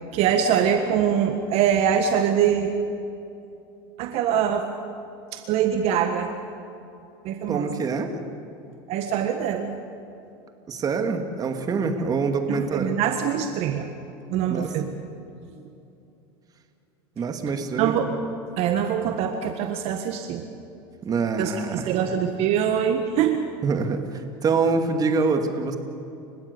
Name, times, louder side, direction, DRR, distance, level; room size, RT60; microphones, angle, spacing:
voice 1, 0.1-2.7 4.0-4.7 5.3-6.3 7.2-7.7 8.9-9.7 12.5-13.9 14.3-14.9 17.8-18.1 18.6-20.4 21.4-23.4, right 8 dB, 55° right, 6 dB, 1.6 m, -23 dB
voice 2, 7.5-8.2 10.7-12.9 14.5-14.7 17.2-18.0 21.0-21.9 23.6-25.8, right 4 dB, 30° right, 6 dB, 2.4 m, -25 dB
30.0 x 17.0 x 7.0 m, 2.8 s
supercardioid pair, 110°, 13 cm